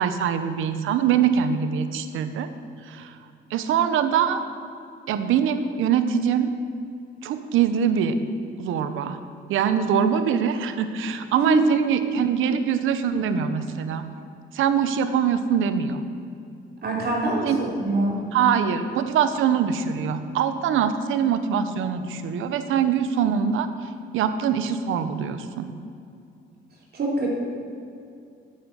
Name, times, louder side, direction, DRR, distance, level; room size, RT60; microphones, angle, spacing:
voice 1, 0.0-2.5 2.9-3.2 3.5-4.4 5.1-6.5 7.2-8.2 8.6-9.2 9.5-14.0 14.5-16.0 17.4-17.7 18.3-23.7 24.1-25.7, right 8 dB, 85° right, 10 dB, 1.0 m, -23 dB
voice 2, 16.8-18.2 26.9-27.3, right 1 dB, 55° right, -3 dB, 3.6 m, -24 dB
9.5 x 9.4 x 8.2 m, 2.5 s
cardioid pair, 90°, 20 cm